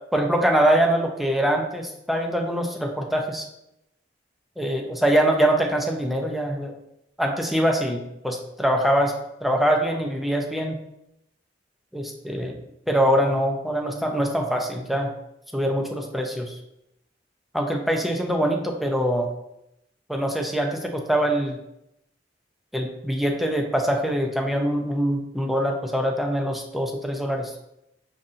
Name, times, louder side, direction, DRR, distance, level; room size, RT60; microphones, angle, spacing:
voice 1, 0.1-3.4 4.6-6.7 7.2-9.1 9.4-10.8 11.9-12.6 12.9-15.1 15.5-16.5 17.5-19.3 20.1-21.6 22.7-27.5, right 1 dB, ahead, 1 dB, 0.5 m, -23 dB
5.4 x 2.5 x 2.5 m, 0.80 s
head